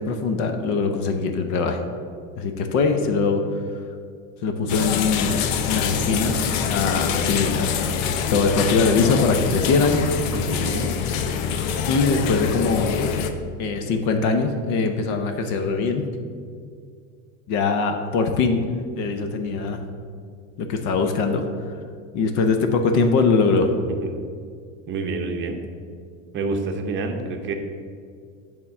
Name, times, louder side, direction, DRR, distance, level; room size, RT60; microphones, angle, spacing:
voice 1, 0.0-1.8 2.4-3.4 4.4-8.0 8.3-10.0 11.9-13.0 13.6-16.1 17.5-18.6 19.0-19.8 20.6-21.4 22.1-23.7, left 4 dB, 45° left, 6 dB, 0.7 m, -22 dB
sound 1, 4.7-13.3, left 7 dB, 80° left, 0.8 m, -25 dB
voice 2, 10.3-10.9 24.0-24.1 24.9-25.6 26.3-27.5, right 3 dB, 30° right, 4 dB, 0.8 m, -28 dB
8.4 x 3.6 x 6.5 m, 2.2 s
supercardioid pair, 145°, 40 cm